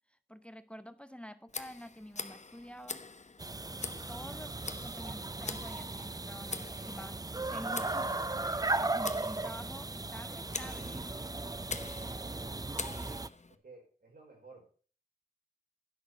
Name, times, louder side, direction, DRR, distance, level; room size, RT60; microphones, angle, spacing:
voice 1, 0.1-3.0 4.1-11.2, equal, 5° left, 12 dB, 0.7 m, -48 dB
Tick, 1.5-13.6, left 3 dB, 50° left, 0.9 m, -45 dB
sound 1, 3.4-13.3, right 2 dB, 25° right, 0.5 m, -37 dB
voice 2, 11.8-12.7 13.6-14.7, right 3 dB, 85° right, -1 dB, 5.0 m, -55 dB
10.5 x 6.1 x 7.0 m, 0.42 s
wide cardioid pair, 55°, 15 cm